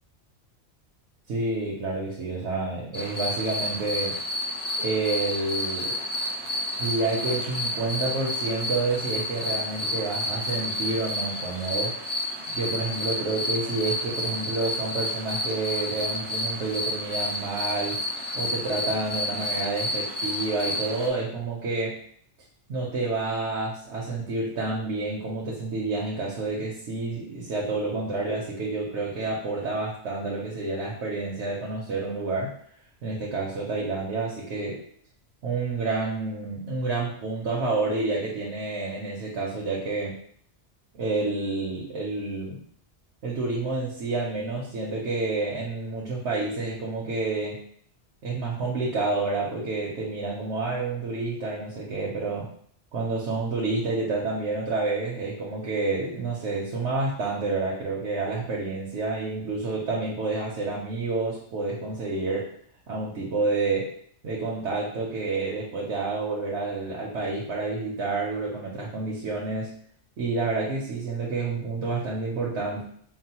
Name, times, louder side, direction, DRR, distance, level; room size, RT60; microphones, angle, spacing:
voice 1, 1.3-4.2 4.8-6.0 6.8-12.0 12.5-22.0 22.7-32.6 33.0-34.8 35.4-40.2 40.9-42.6 43.2-47.6 48.2-52.5 52.9-62.5 62.9-64.0 64.2-69.7 70.2-72.8, right 3 dB, 85° right, -3 dB, 1.0 m, -29 dB
sound 1, 2.9-21.1, left 1 dB, 5° left, 0.6 m, -30 dB
4.6 x 2.0 x 2.8 m, 0.62 s
omnidirectional pair, 1.2 m